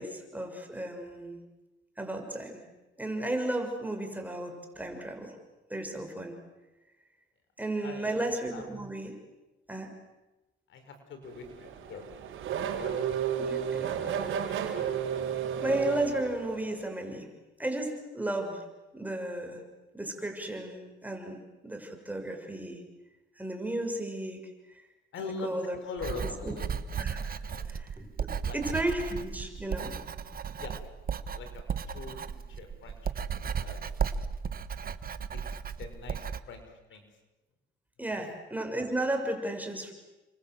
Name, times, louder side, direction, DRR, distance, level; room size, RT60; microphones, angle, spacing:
voice 1, 0.0-1.4 2.0-2.6 3.0-5.3 5.7-6.3 7.6-9.1 9.7-9.9 13.4-14.5 15.6-17.3 17.6-18.6 18.9-19.6 19.9-22.8 23.4-24.5 25.2-25.8 26.2-26.5 27.0-27.4 27.6-28.1 28.5-30.0 38.0-39.9, right 1 dB, 10° right, 4 dB, 6.1 m, -34 dB
voice 2, 7.8-8.2 8.5-8.6 10.7-12.3 12.6-13.5 25.1-26.7 27.4-27.7 28.5-28.6 30.6-30.8 31.3-33.8 35.3-37.1, left 4 dB, 75° left, 7 dB, 5.5 m, -43 dB
Race car auto racing / Accelerating revving vroom, 11.3-16.8, right 8 dB, 80° right, 4.4 m, -32 dB
Writing, 26.0-36.4, right 6 dB, 45° right, 1.4 m, -35 dB
30.0 x 25.0 x 7.8 m, 1.1 s
cardioid pair, 90°, 20 cm